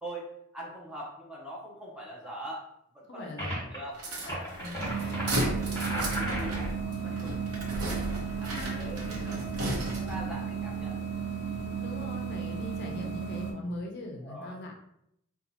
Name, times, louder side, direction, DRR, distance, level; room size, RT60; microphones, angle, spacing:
voice 1, 0.5-2.7 2.9-3.3 3.7-5.2 5.6-9.5 9.9-11.1 14.2-14.6, right 1 dB, 5° right, -5 dB, 0.7 m, -43 dB
voice 2, 3.1-3.7 4.6-5.0 8.5-8.9 11.8-14.7, left 1 dB, 50° left, 1 dB, 0.4 m, -40 dB
sound 1, 3.4-3.8 4.2-6.7, equal, 10° left, 1.3 m, -35 dB
sound 2, 3.9-10.3, right 1 dB, 80° right, 0.8 m, -35 dB
sound 3, 4.5-13.5, right 6 dB, 50° right, 0.6 m, -34 dB
2.7 x 2.3 x 4.0 m, 0.75 s
head